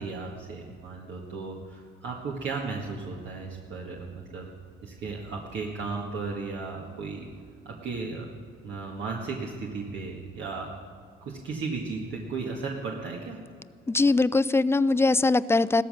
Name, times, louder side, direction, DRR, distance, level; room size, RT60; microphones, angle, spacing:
voice 1, 0.0-4.5 4.8-7.3 7.7-8.3 8.6-10.7 11.2-13.4, right 4 dB, 70° right, -1 dB, 1.8 m, -35 dB
voice 2, 13.9-15.8, left 3 dB, 10° left, 17 dB, 0.4 m, -21 dB
16.0 x 13.5 x 6.5 m, 2.2 s
cardioid pair, 90°, 20 cm